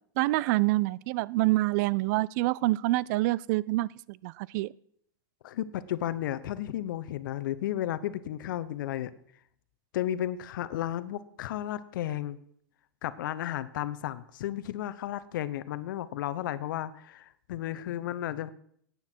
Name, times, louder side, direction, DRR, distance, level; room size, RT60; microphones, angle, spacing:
voice 1, 0.2-4.7, right 19 dB, 50° right, 23 dB, 0.4 m, -27 dB
voice 2, 5.4-9.1 9.9-12.4 13.0-18.5, left 12 dB, 65° left, 15 dB, 0.8 m, -33 dB
14.5 x 9.6 x 4.5 m, 0.65 s
hypercardioid pair, 115°, 12 cm